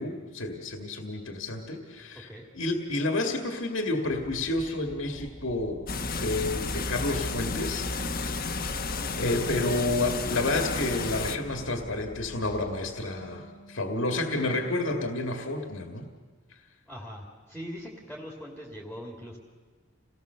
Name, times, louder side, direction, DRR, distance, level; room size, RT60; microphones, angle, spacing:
voice 1, 0.0-2.3 2.5-5.9 6.2-8.6 9.2-16.1, left 2 dB, 70° left, 3 dB, 2.0 m, -30 dB
voice 2, 2.1-2.4 16.9-19.4, equal, ahead, -1 dB, 2.9 m, -41 dB
sound 1, 4.1-12.9, equal, 20° right, 2.0 m, -47 dB
sound 2, 5.9-11.4, left 3 dB, 45° left, 1.3 m, -32 dB
Wind instrument woodwind instrument, 8.8-15.3, equal, 15° left, 1.7 m, -50 dB
28.5 x 18.5 x 6.8 m, 1.4 s
head